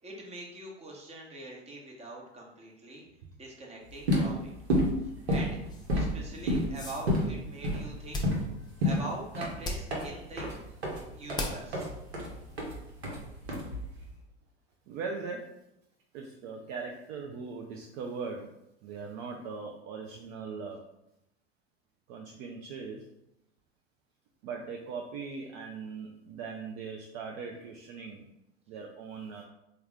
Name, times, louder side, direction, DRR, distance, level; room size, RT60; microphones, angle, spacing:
voice 1, 0.0-3.0 3.4-4.5 5.3-5.6 5.9-8.2 8.8-10.5 11.1-11.9, right 2 dB, 20° right, -2 dB, 1.0 m, -43 dB
sound 1, 3.9-14.1, equal, 75° right, 0.9 m, -31 dB
sound 2, 5.7-13.0, left 2 dB, 15° left, 0.5 m, -42 dB
voice 2, 14.9-15.5 16.1-18.5 18.8-20.8 22.1-23.0 24.4-28.3 28.7-29.4, right 5 dB, 45° right, 1 dB, 0.5 m, -40 dB
3.4 x 2.2 x 3.4 m, 0.84 s
figure-of-eight pair, 80°, 32 cm